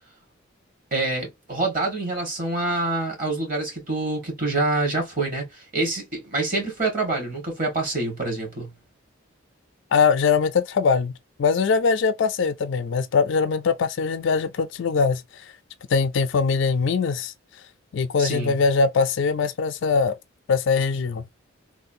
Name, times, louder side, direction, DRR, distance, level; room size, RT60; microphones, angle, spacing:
voice 1, 0.9-8.7 18.2-18.6, right 2 dB, 40° right, 1.5 m, -26 dB
voice 2, 9.9-11.1 11.4-15.2 15.9-17.3 17.9-20.1 20.5-21.2, left 5 dB, 60° left, 0.4 m, -21 dB
3.1 x 2.4 x 2.6 m
head